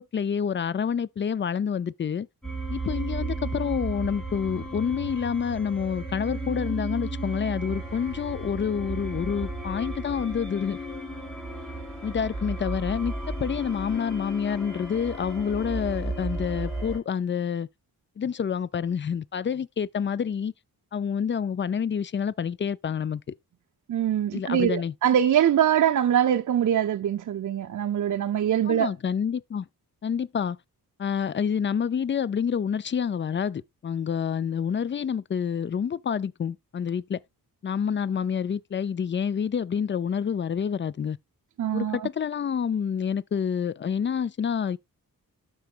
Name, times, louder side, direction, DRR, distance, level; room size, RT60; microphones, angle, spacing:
voice 1, 0.0-2.3 2.7-10.8 12.0-17.7 18.2-20.5 20.9-23.2 24.3-24.9 28.7-29.7 30.0-30.6 31.0-37.2 37.6-41.2 41.7-44.8, left 7 dB, 30° left, 0.4 m, -28 dB
sound 1, 2.4-17.0, right 2 dB, ahead, 3.4 m, -34 dB
voice 2, 23.9-28.9 41.6-42.1, right 10 dB, 55° right, 0.6 m, -23 dB
12.5 x 4.7 x 2.4 m
cardioid pair, 80°, 37 cm